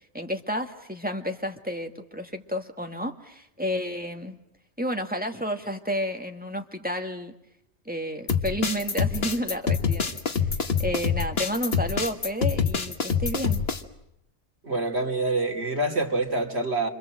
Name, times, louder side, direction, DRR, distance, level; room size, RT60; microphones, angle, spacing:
voice 1, 0.1-4.4 4.8-7.3 7.9-10.1 10.8-13.6, equal, 10° right, 4 dB, 1.8 m, -31 dB
sound 1, 8.3-13.8, left 6 dB, 60° left, 1.7 m, -26 dB
voice 2, 14.6-16.9, right 2 dB, 70° right, 2 dB, 3.0 m, -26 dB
28.0 x 26.5 x 7.7 m, 0.79 s
omnidirectional pair, 1.2 m